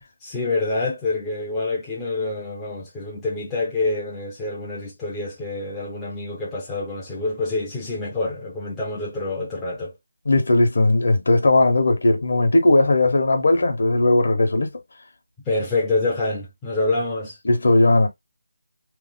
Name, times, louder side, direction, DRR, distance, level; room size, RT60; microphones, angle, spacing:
voice 1, 0.2-9.9 15.5-17.4, left 2 dB, 5° left, 0.5 m, -26 dB
voice 2, 10.2-14.8 17.4-18.1, left 2 dB, 50° left, 0.9 m, -18 dB
3.1 x 2.0 x 3.6 m
figure-of-eight pair, 175°, 0 cm